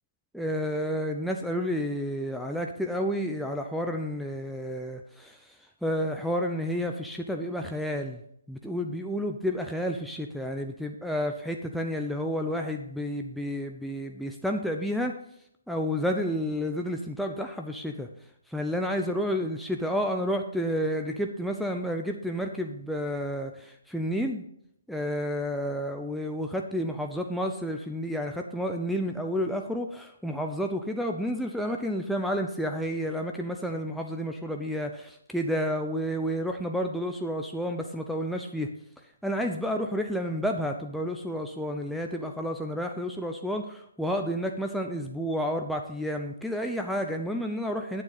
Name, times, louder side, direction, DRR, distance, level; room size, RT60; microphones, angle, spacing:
voice 1, 0.3-5.4 5.8-8.2 8.5-15.1 15.7-18.1 18.5-24.4 24.9-38.7 39.2-48.0, equal, ahead, 2 dB, 0.7 m, -30 dB
10.5 x 9.2 x 4.1 m, 0.72 s
figure-of-eight pair, 135°, 0 cm